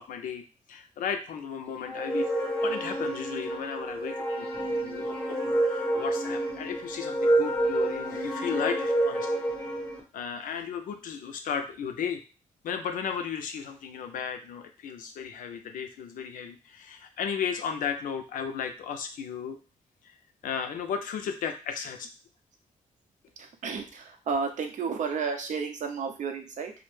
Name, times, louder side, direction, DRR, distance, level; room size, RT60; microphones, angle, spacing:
voice 1, 0.0-4.5 4.8-9.4 10.1-12.2 12.6-19.6 20.0-20.2 20.4-22.1, left 7 dB, 75° left, 7 dB, 0.4 m, -35 dB
sound 1, 1.9-10.0, right 1 dB, 5° left, 0.7 m, -28 dB
voice 2, 23.6-26.7, right 5 dB, 65° right, 5 dB, 0.5 m, -32 dB
2.1 x 2.0 x 3.0 m, 0.33 s
cardioid pair, 90°, 14 cm